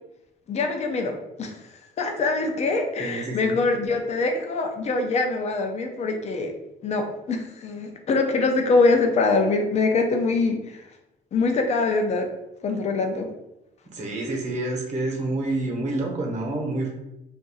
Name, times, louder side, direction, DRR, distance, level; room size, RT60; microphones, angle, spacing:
voice 1, 0.5-1.6 2.0-6.5 6.8-10.8 11.3-12.3 12.6-13.3, left 3 dB, 40° left, 4 dB, 0.6 m, -24 dB
voice 2, 3.0-3.6 13.9-16.9, right 2 dB, 40° right, 0 dB, 1.1 m, -28 dB
2.6 x 2.6 x 4.0 m, 0.89 s
cardioid pair, 110°, 17 cm